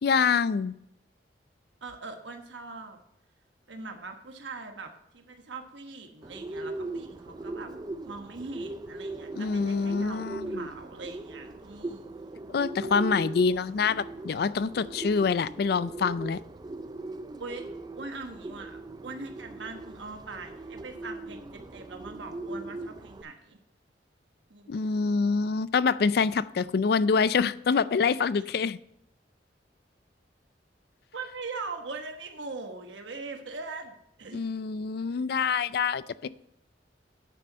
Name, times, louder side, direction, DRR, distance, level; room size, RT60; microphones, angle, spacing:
voice 1, 0.0-0.7 9.3-10.6 12.5-16.4 24.7-28.8 34.3-36.3, left 5 dB, 55° left, 17 dB, 0.4 m, -26 dB
voice 2, 1.8-3.0 3.7-7.7 8.0-12.4 17.4-17.6 18.0-23.6 24.5-25.1 31.1-34.4, right 3 dB, 85° right, 5 dB, 1.2 m, -41 dB
Bird, 6.2-23.2, right 2 dB, 20° right, 0.4 m, -39 dB
9.0 x 6.7 x 5.3 m, 0.78 s
head